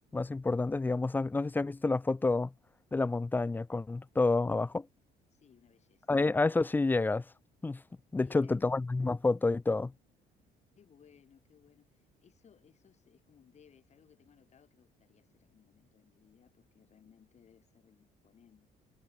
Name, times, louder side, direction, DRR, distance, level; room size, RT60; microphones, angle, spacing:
voice 1, 0.1-2.5 2.9-4.9 6.1-7.2 7.6-7.8 8.1-9.9, left 3 dB, 10° left, 0.4 m, -29 dB
voice 2, 5.3-6.1 8.1-8.7 10.8-18.7, left 8 dB, 40° left, 3.0 m, -63 dB
cardioid pair, 110°, 17 cm